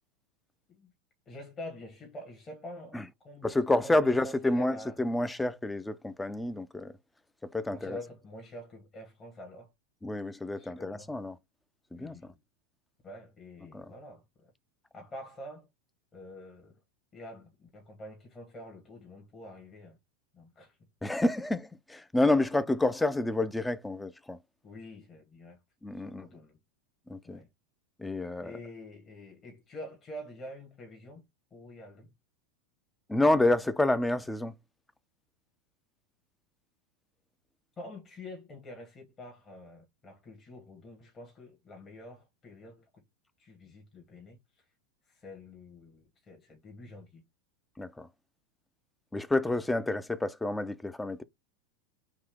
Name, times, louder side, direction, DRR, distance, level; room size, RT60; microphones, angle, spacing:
voice 1, 1.3-4.9 7.7-9.7 10.6-11.1 11.9-12.4 13.0-14.5 14.9-15.7 16.1-16.8 17.1-20.0 20.3-20.8 22.5-22.7 24.6-25.6 26.0-26.6 27.2-27.5 28.4-31.2 31.5-32.1 37.8-43.0 43.4-44.6 45.1-47.2, left 1 dB, 30° left, 1.2 m, -47 dB
voice 2, 3.4-6.9 7.5-8.0 10.0-11.4 11.9-12.2 13.7-13.9 21.0-24.4 25.8-26.3 27.1-27.4 28.0-28.5 33.1-34.5 47.8-48.1 49.1-51.2, left 2 dB, 10° left, 0.4 m, -29 dB
3.6 x 2.8 x 3.4 m
hypercardioid pair, 90°, 0 cm